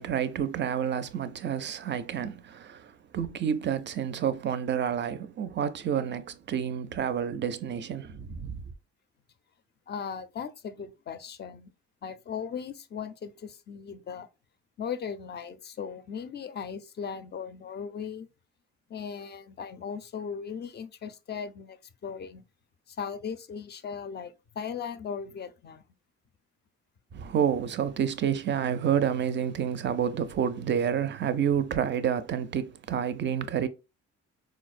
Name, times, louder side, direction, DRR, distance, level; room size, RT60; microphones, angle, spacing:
voice 1, 0.0-8.6 27.1-33.7, right 8 dB, 40° right, 0.4 m, -29 dB
voice 2, 9.9-11.7 12.0-14.3 14.8-18.3 18.9-22.4 22.9-25.8, left 6 dB, 35° left, 0.4 m, -38 dB
4.4 x 2.1 x 2.4 m
cardioid pair, 90°, 30 cm